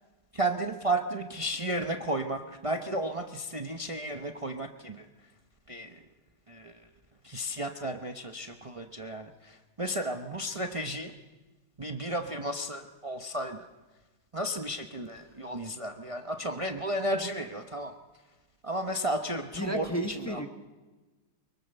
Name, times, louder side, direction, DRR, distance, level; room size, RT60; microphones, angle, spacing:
voice 1, 0.3-5.0 5.7-5.9 6.5-6.7 7.2-9.5 9.8-11.1 11.8-13.6 14.3-17.9 18.6-19.9 20.3-20.5, right 1 dB, 40° right, 5 dB, 0.4 m, -33 dB
voice 2, 19.3-20.5, equal, 10° left, 5 dB, 1.1 m, -33 dB
24.0 x 23.0 x 6.7 m, 1.2 s
omnidirectional pair, 2.4 m